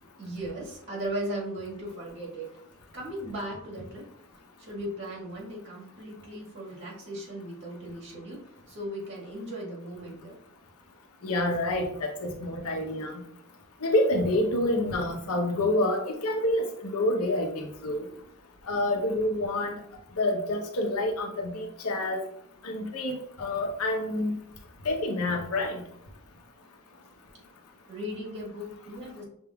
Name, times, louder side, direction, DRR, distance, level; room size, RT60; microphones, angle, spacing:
voice 1, 0.0-2.6 2.9-4.1 4.3-10.4 27.9-29.2, right 1 dB, 60° right, -4 dB, 1.7 m, -37 dB
voice 2, 11.2-13.2 13.8-18.1 18.7-19.7 20.2-22.2 22.6-24.3 24.8-25.8, left 1 dB, 80° left, 3 dB, 0.8 m, -28 dB
6.1 x 3.5 x 2.3 m, 0.72 s
head